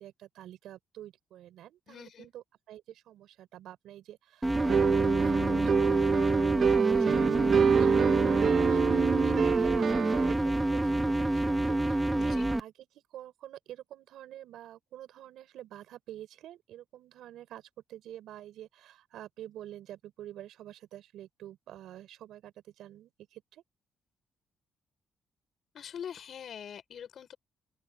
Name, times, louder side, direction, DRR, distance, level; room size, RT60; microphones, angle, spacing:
voice 1, 0.0-23.6, right 12 dB, 80° right, 6.5 m, -48 dB
voice 2, 1.9-2.3 12.1-12.4 25.7-27.4, left 8 dB, 60° left, 6.6 m, -43 dB
sound 1, 4.4-12.6, right 1 dB, 10° right, 0.7 m, -28 dB
sound 2, 4.5-10.3, right 7 dB, 55° right, 1.7 m, -26 dB
open air
cardioid pair, 90°, 0 cm